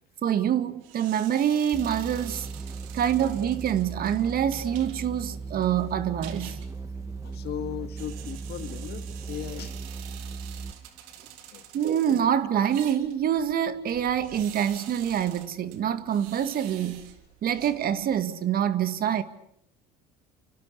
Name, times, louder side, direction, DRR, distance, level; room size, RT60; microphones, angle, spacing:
voice 1, 0.2-2.5 2.9-6.6 11.7-17.1 17.4-19.2, right 9 dB, 50° right, 2.3 m, -26 dB
sound 1, 0.8-18.3, right 11 dB, 75° right, 3.6 m, -48 dB
sound 2, 1.7-10.8, right 4 dB, 15° right, 2.0 m, -37 dB
voice 2, 7.2-9.8 11.5-11.8, left 10 dB, 55° left, 2.4 m, -37 dB
29.0 x 27.0 x 7.0 m
hypercardioid pair, 80°, 20 cm